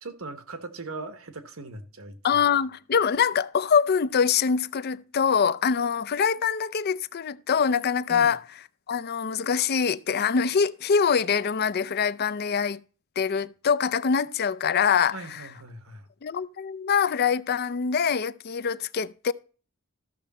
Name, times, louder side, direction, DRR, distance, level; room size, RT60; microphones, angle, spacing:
voice 1, 0.0-2.4 8.1-8.3 15.1-16.1, right 3 dB, 80° right, 1.3 m, -40 dB
voice 2, 2.2-8.4 8.9-12.8 13.2-15.4 16.2-19.3, left 6 dB, 50° left, 0.5 m, -24 dB
13.5 x 6.4 x 4.1 m
head